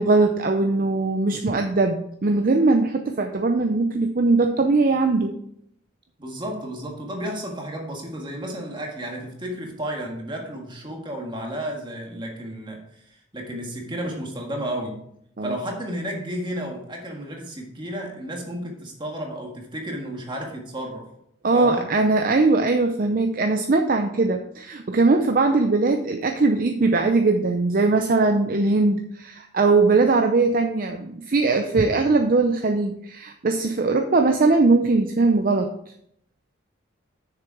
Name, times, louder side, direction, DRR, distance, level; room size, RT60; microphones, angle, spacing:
voice 1, 0.0-5.3 15.4-15.6 21.4-35.7, right 3 dB, 45° right, 5 dB, 0.5 m, -20 dB
voice 2, 6.2-15.0 15.4-21.1 21.5-21.9, right 1 dB, 25° right, 1 dB, 1.6 m, -32 dB
6.8 x 6.8 x 4.7 m, 0.72 s
head